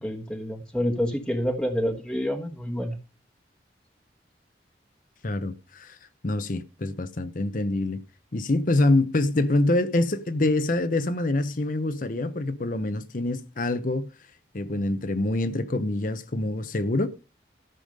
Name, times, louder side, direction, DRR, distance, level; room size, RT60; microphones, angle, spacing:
voice 1, 0.0-3.0, equal, 5° left, 1.3 m, -28 dB
voice 2, 5.2-6.0 6.2-8.0 8.3-14.1 14.5-17.1, left 2 dB, 45° left, 0.8 m, -25 dB
13.5 x 7.0 x 5.2 m
head